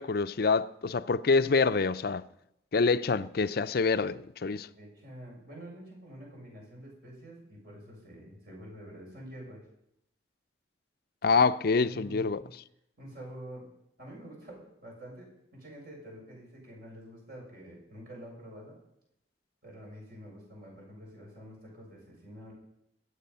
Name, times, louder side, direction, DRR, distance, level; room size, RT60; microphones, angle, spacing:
voice 1, 0.0-2.3 2.7-4.7 11.2-12.4, left 4 dB, 60° left, 0.5 m, -26 dB
voice 2, 4.6-9.6 11.7-12.5 13.0-13.7 14.0-18.8 19.6-22.5, equal, 60° right, 7.1 m, -47 dB
22.0 x 8.7 x 5.7 m
head